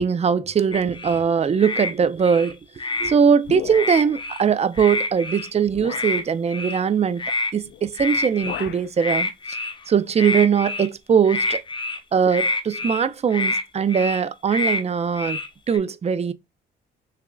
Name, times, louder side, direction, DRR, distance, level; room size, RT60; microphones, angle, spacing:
voice 1, 0.0-2.6 3.0-9.6 9.9-11.6 12.1-15.4 15.7-16.3, right 7 dB, 30° right, 0.5 m, -21 dB
sound 1, 0.7-1.2 1.6-1.9 2.2-3.1 3.7-4.4 4.7-5.5 5.9-6.2 6.5-6.8 7.2-7.5 7.9-8.7 9.0-9.8 10.2-10.9 11.2-12.0 12.3-13.0 13.3-13.6 13.9-14.2 14.5-14.8 15.1-15.8, left 2 dB, 25° left, 0.9 m, -27 dB
sound 2, 3.4-4.2 5.1-5.2 5.8-6.2 7.6-7.9 8.1-8.9, left 11 dB, 65° left, 0.4 m, -36 dB
6.5 x 2.4 x 2.2 m
cardioid pair, 90°, 20 cm